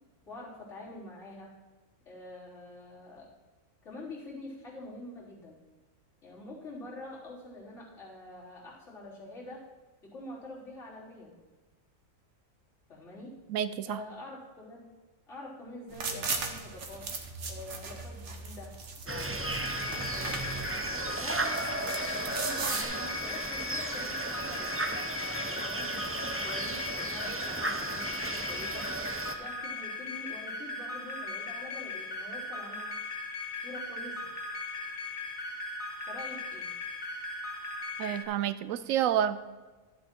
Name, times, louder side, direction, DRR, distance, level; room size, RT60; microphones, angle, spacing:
voice 1, 0.3-1.5 2.0-3.3 3.8-5.6 6.2-9.6 10.0-11.4 12.9-13.4 13.9-14.9 15.3-17.1 17.5-18.7 19.0-19.5 20.1-24.7 25.4-28.9 29.4-33.0 33.5-34.2 36.1-36.7, left 2 dB, 60° left, -8 dB, 4.1 m, -46 dB
voice 2, 13.5-14.0 38.0-39.5, right 10 dB, 80° right, 14 dB, 1.0 m, -29 dB
sound 1, 15.9-22.8, right 4 dB, 60° right, 1.4 m, -38 dB
sound 2, 19.1-29.3, right 2 dB, 15° right, 0.4 m, -35 dB
sound 3, 19.4-38.2, left 3 dB, 75° left, 1.8 m, -38 dB
12.5 x 7.8 x 4.4 m, 1.3 s
omnidirectional pair, 1.4 m